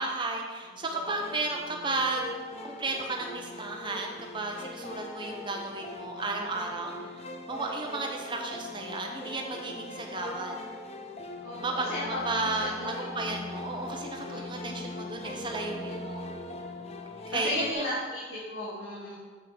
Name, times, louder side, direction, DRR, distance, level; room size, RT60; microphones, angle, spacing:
voice 1, 0.0-2.3 2.6-10.6 11.6-16.2 17.3-17.9, right 2 dB, 25° right, 1 dB, 0.9 m, -33 dB
sound 1, 0.9-17.7, left 2 dB, 30° left, 0.5 m, -41 dB
voice 2, 11.4-13.1 14.3-14.5 17.3-19.2, left 1 dB, 85° left, -10 dB, 2.2 m, -35 dB
7.5 x 5.6 x 5.0 m, 1.5 s
head